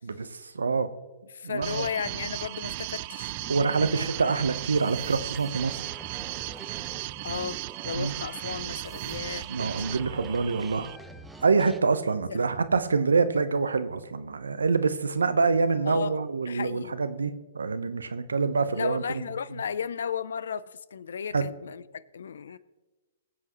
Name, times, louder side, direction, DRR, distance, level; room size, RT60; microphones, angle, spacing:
voice 1, 0.0-0.9 1.4-1.8 3.5-5.8 7.9-8.2 9.5-10.9 11.4-19.2 21.3-21.4, right 4 dB, 85° right, 12 dB, 0.9 m, -26 dB
voice 2, 1.3-3.3 7.2-9.5 12.3-12.5 15.9-16.2 16.5-17.0 18.7-22.6, left 7 dB, 75° left, 19 dB, 0.5 m, -34 dB
sound 1, 1.6-11.0, right 20 dB, 45° right, 0.3 m, -36 dB
sound 2, 3.3-11.8, right 2 dB, 5° right, 0.9 m, -47 dB
23.0 x 7.8 x 3.1 m, 1.2 s
hypercardioid pair, 125°, 0 cm